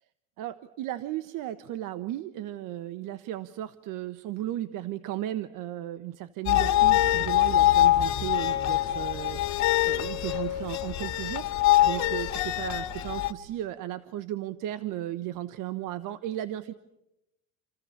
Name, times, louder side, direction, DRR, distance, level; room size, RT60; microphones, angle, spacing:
voice 1, 0.4-16.7, right 13 dB, 65° right, 12 dB, 1.3 m, -35 dB
sound 1, 6.5-13.3, left 14 dB, 50° left, 2.1 m, -24 dB
28.5 x 28.0 x 7.3 m, 0.89 s
cardioid pair, 125°, 35 cm